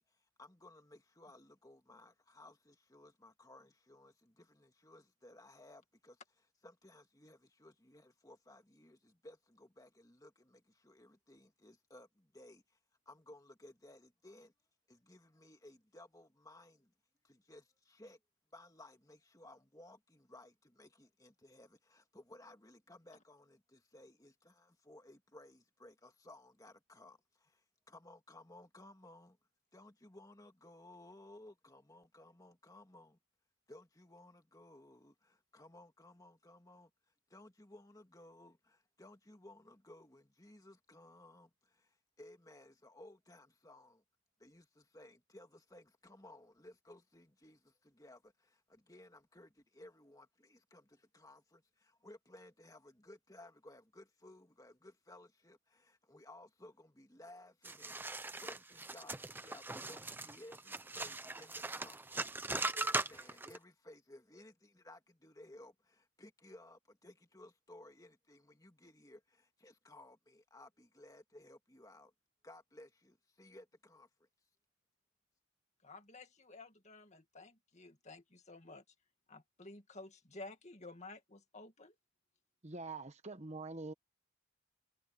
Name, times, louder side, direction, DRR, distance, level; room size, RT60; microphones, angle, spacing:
voice 1, 0.0-6.2 6.6-12.8 13.1-14.5 14.9-16.9 17.2-18.2 18.5-29.4 29.7-33.2 33.7-36.9 37.3-44.0 44.4-72.1 72.4-74.3, left 1 dB, 15° left, 2.1 m, -58 dB
sound 1, 57.6-63.6, right 2 dB, 10° right, 0.5 m, -40 dB
voice 2, 75.8-78.8 79.3-81.9, left 2 dB, 30° left, 2.2 m, -53 dB
voice 3, 82.6-83.9, right 3 dB, 30° right, 1.0 m, -44 dB
head